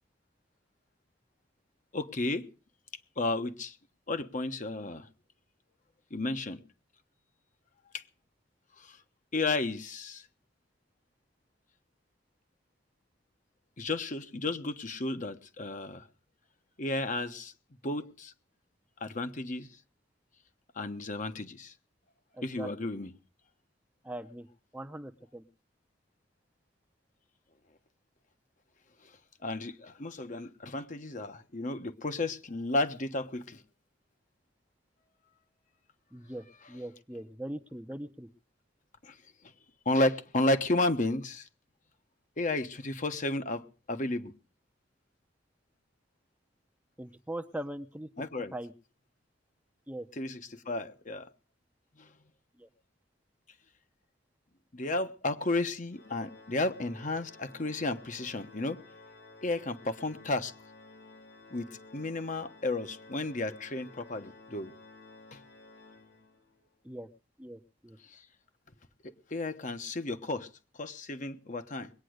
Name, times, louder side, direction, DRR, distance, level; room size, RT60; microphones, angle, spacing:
voice 1, 1.9-2.5 3.2-3.7 4.1-5.1 6.1-6.6 7.9-8.0 8.8-9.0 9.3-10.2 13.8-16.0 16.8-17.5 17.8-18.3 19.0-19.7 20.8-21.7 22.4-23.1 29.4-33.6 39.0-39.1 39.8-41.5 42.4-44.3 48.2-48.5 50.2-51.3 52.0-52.1 54.7-58.8 59.4-60.5 61.5-61.7 61.9-64.7 68.1-68.2 69.0-70.5 70.8-71.9, left 2 dB, 45° left, 1.2 m, -32 dB
voice 2, 22.3-22.7 24.0-24.5 24.7-25.4 36.1-38.3 47.0-48.1 48.5-48.7 49.9-50.1 52.6-52.7 66.8-67.1 67.4-68.0, right 1 dB, 10° right, 0.8 m, -41 dB
Organ, 55.9-66.6, left 3 dB, 75° left, 4.0 m, -53 dB
21.5 x 9.2 x 6.4 m
head